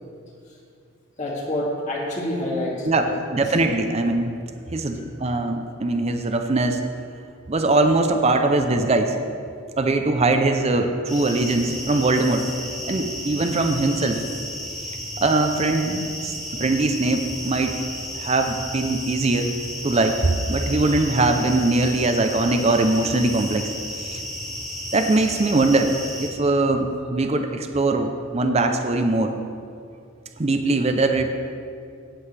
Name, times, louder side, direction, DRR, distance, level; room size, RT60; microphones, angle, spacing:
voice 1, 1.2-3.1 3.4-3.5 4.9-5.1, left 1 dB, 35° left, -4 dB, 2.3 m, -28 dB
voice 2, 3.3-4.3 4.7-6.8 7.5-9.1 9.8-12.4 12.9-14.2 15.2-17.8 18.1-19.5 19.8-23.7 24.1-24.2 24.9-25.9 26.2-29.3 30.4-31.3, right 2 dB, 30° right, 6 dB, 0.6 m, -21 dB
sound 1, 11.1-26.3, equal, ahead, 1.7 m, -33 dB
17.5 x 7.7 x 3.4 m, 2.4 s
head